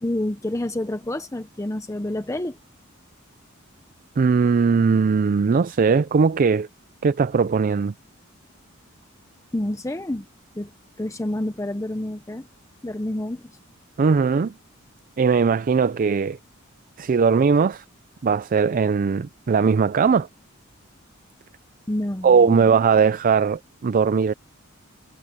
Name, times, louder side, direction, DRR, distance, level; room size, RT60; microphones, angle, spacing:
voice 1, 0.0-2.6 9.5-10.3 10.6-10.7 11.0-12.5 12.8-13.6 21.9-22.7, left 1 dB, 15° left, 0.8 m, -28 dB
voice 2, 4.2-6.7 7.0-7.9 14.0-14.5 15.2-16.4 17.0-17.8 18.2-20.3 22.2-24.3, right 5 dB, 40° right, 0.4 m, -19 dB
head